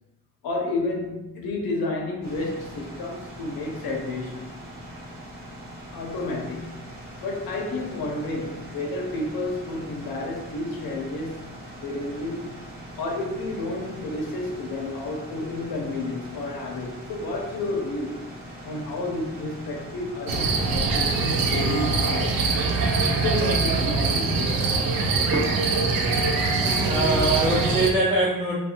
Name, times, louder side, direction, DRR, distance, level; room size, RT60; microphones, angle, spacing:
voice 1, 0.4-4.5 5.9-6.9 7.2-11.5 11.8-12.6 13.0-18.2 18.6-22.4 23.2-24.7, left 2 dB, 80° left, 1 dB, 0.6 m, -31 dB
printing machine delivery, 2.2-22.1, equal, 55° right, 1.0 m, -41 dB
sound 1, 20.3-27.9, right 3 dB, 70° right, 0.5 m, -23 dB
voice 2, 25.3-25.7 26.8-28.6, right 2 dB, 15° right, -9 dB, 0.5 m, -23 dB
2.5 x 2.2 x 2.7 m, 0.92 s
cardioid pair, 120°, 36 cm